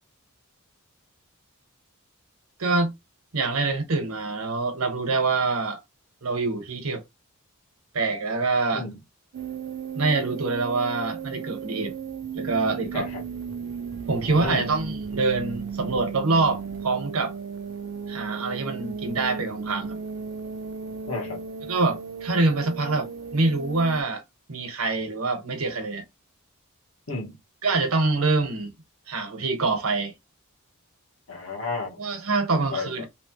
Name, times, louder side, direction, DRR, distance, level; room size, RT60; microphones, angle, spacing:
voice 1, 2.6-2.9 3.3-5.8 6.2-7.0 7.9-8.9 9.9-11.9 12.3-13.1 14.1-17.3 18.1-20.0 21.7-24.2 24.5-26.0 27.6-28.7 29.1-30.1 32.0-33.1, right 3 dB, 75° right, 1.0 m, -25 dB
sound 1, 9.3-24.0, right 6 dB, 60° right, 0.4 m, -35 dB
voice 2, 14.3-14.7 21.1-21.4 27.1-27.4 31.3-32.0 32.5-33.1, left 3 dB, 65° left, 0.9 m, -32 dB
3.0 x 2.1 x 2.9 m
head